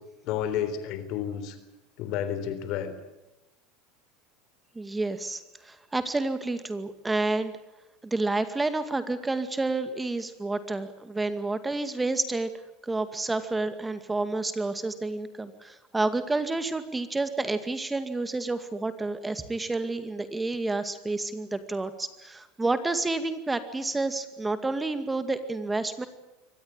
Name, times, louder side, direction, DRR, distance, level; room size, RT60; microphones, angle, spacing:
voice 1, 0.2-1.6 2.0-2.9, left 9 dB, 60° left, 11 dB, 3.8 m, -31 dB
voice 2, 4.8-7.5 8.0-12.5 12.8-26.1, right 2 dB, 15° right, 10 dB, 2.2 m, -29 dB
24.0 x 19.0 x 9.0 m, 0.98 s
hypercardioid pair, 85°, 0 cm